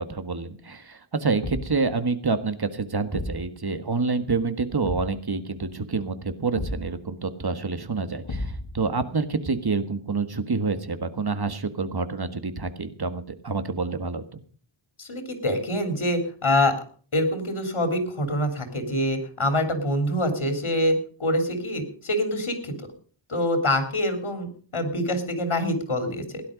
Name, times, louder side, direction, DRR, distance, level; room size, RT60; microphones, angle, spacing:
voice 1, 0.0-14.4, right 4 dB, 50° right, 10 dB, 1.6 m, -28 dB
Thump thud, 1.4-1.9 3.1-3.5 4.8-5.2 6.5-6.9 8.2-8.8, left 2 dB, 60° left, 2.5 m, -32 dB
voice 2, 15.0-16.7 17.1-22.7 23.3-24.5 24.7-26.4, left 1 dB, 85° left, 6 dB, 3.5 m, -25 dB
17.0 x 11.5 x 5.2 m, 0.43 s
wide cardioid pair, 75°, 47 cm